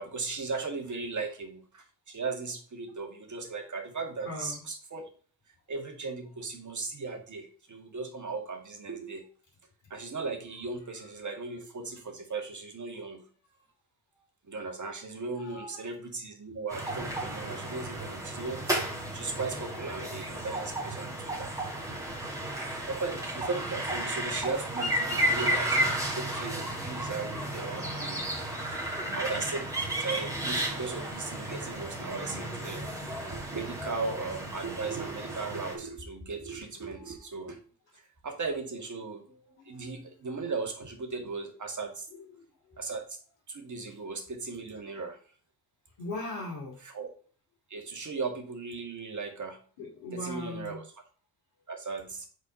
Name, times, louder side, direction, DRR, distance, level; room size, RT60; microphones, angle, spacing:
voice 1, 0.0-5.0 5.7-9.2 9.9-13.3 14.5-18.8 19.1-21.5 22.9-25.8 26.1-28.3 29.1-29.7 30.0-32.9 33.3-37.6 38.0-39.2 39.7-42.1 42.8-43.2 43.5-45.2 46.9-47.1 47.7-49.6 50.1-50.8 51.7-52.3, right 4 dB, 35° right, 4 dB, 1.9 m, -37 dB
voice 2, 4.2-4.6 11.0-11.1 11.5-11.6 12.9-13.0 13.5-13.6 15.4-15.9 17.5-18.0 19.7-19.9 21.6-22.4 22.8-22.9 26.3-26.6 29.0-29.1 37.0-37.1 39.3-40.2 41.3-41.4 42.1-42.8 43.9-44.0 46.0-46.8 49.8-50.8, left 2 dB, 70° left, -4 dB, 2.5 m, -42 dB
sound 1, 16.7-35.8, right 1 dB, 5° right, 2.4 m, -33 dB
5.1 x 4.2 x 5.4 m, 0.43 s
hypercardioid pair, 50°, 48 cm